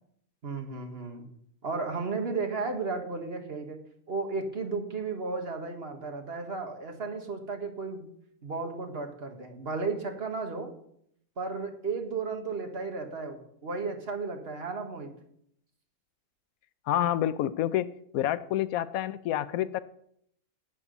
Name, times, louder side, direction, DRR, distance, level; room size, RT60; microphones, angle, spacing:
voice 1, 0.4-1.3 1.6-3.8 4.1-8.0 8.4-10.7 11.4-15.1, right 4 dB, 45° right, 4 dB, 1.8 m, -34 dB
voice 2, 16.9-17.9 18.1-19.8, left 12 dB, 90° left, 15 dB, 1.0 m, -28 dB
12.0 x 8.5 x 5.4 m, 0.69 s
omnidirectional pair, 1.4 m